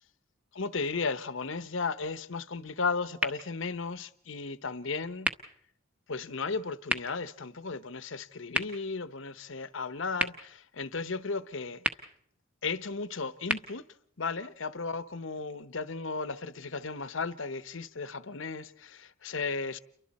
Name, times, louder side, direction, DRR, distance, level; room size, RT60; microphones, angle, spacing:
voice 1, 0.5-5.3 6.1-11.8 12.6-13.9 14.2-19.8, left 4 dB, 65° left, 0.9 m, -35 dB
sound 1, 3.1-15.1, equal, 5° right, 1.1 m, -39 dB
29.5 x 23.5 x 4.2 m
head